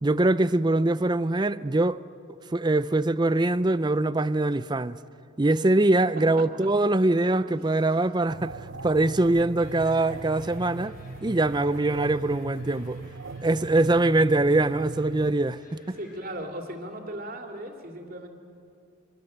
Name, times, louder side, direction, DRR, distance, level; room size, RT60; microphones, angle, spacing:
voice 1, 0.0-2.0 2.5-5.0 5.4-8.5 8.8-10.9 11.2-13.0 13.4-16.0, right 2 dB, 20° right, 0.5 m, -23 dB
sound 1, 8.3-15.3, right 3 dB, 80° right, 0.9 m, -39 dB
sound 2, 9.6-16.4, left 3 dB, 40° left, 7.6 m, -56 dB
voice 2, 16.0-18.3, right 1 dB, 45° right, 2.9 m, -37 dB
27.5 x 26.0 x 8.0 m
head